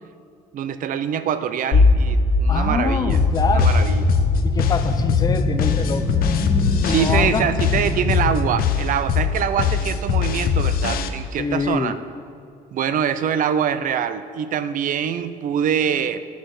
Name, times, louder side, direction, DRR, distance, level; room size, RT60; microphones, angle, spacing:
voice 1, 0.5-3.2 3.5-4.1 6.8-11.9 12.7-16.2, right 8 dB, 55° right, 12 dB, 0.5 m, -24 dB
sound 1, 1.7-8.6, left 2 dB, 80° left, 2.2 m, -21 dB
voice 2, 2.5-3.7 4.4-6.1 6.8-7.5 11.4-12.0, left 5 dB, 25° left, 9 dB, 0.5 m, -25 dB
sound 2, 3.1-11.1, left 8 dB, 60° left, 0.7 m, -22 dB
10.5 x 6.4 x 4.8 m, 2.3 s
cardioid pair, 110°, 17 cm